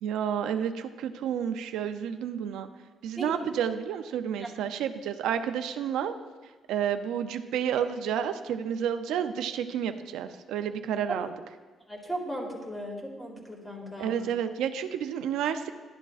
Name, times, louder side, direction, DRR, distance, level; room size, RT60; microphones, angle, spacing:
voice 1, 0.0-2.7 3.0-6.1 6.7-11.3 14.0-15.7, right 8 dB, 90° right, 9 dB, 0.4 m, -30 dB
voice 2, 11.9-14.2, equal, 10° left, 0 dB, 2.3 m, -37 dB
11.5 x 9.9 x 2.4 m, 1.3 s
cardioid pair, 90°, 0 cm